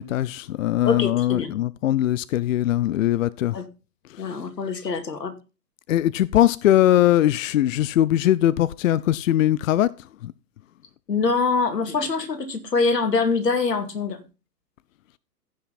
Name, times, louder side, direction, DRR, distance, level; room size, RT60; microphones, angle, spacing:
voice 1, 0.0-3.6 4.1-4.4 5.9-10.3, left 13 dB, 55° left, 0.5 m, -21 dB
voice 2, 0.8-1.5 3.5-3.6 4.2-5.3 11.1-14.2, left 4 dB, 85° left, 2.3 m, -24 dB
15.0 x 5.9 x 4.1 m
hypercardioid pair, 130°, 48 cm